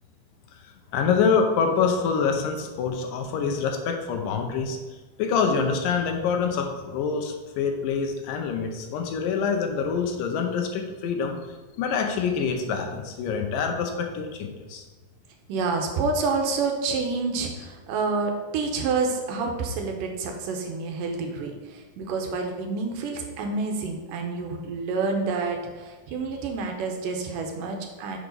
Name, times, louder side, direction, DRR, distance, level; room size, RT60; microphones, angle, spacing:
voice 1, 0.9-4.8 5.2-11.4 11.8-14.8, left 5 dB, 80° left, 4 dB, 2.4 m, -26 dB
voice 2, 15.5-28.2, right 4 dB, 80° right, 3 dB, 2.3 m, -28 dB
6.3 x 4.9 x 5.3 m, 1.2 s
omnidirectional pair, 3.9 m